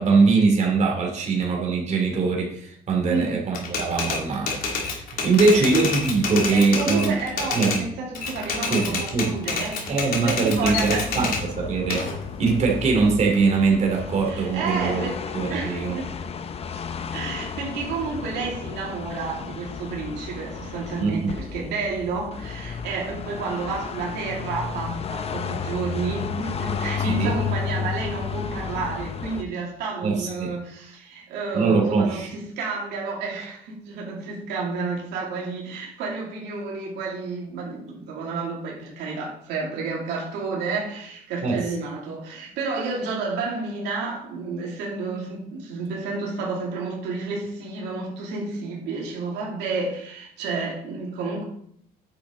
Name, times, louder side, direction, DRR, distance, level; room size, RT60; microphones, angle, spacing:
voice 1, 0.0-7.2 7.5-7.8 8.7-9.4 9.9-12.1 12.4-16.0 21.0-21.3 27.0-27.3 30.0-30.5 31.5-32.3 41.4-41.6, right 4 dB, 45° right, 0 dB, 2.9 m, -22 dB
voice 2, 3.1-3.4 5.4-5.6 6.5-11.3 14.3-15.2 15.5-16.1 17.1-51.4, right 4 dB, 85° right, -3 dB, 2.7 m, -30 dB
Typewriter, 3.5-7.8 8.1-11.4 11.9-13.6, left 4 dB, 60° left, 2.7 m, -28 dB
sound 1, 10.6-29.4, left 6 dB, 35° left, 0.7 m, -33 dB
9.7 x 6.9 x 3.8 m, 0.68 s
cardioid pair, 110°, 17 cm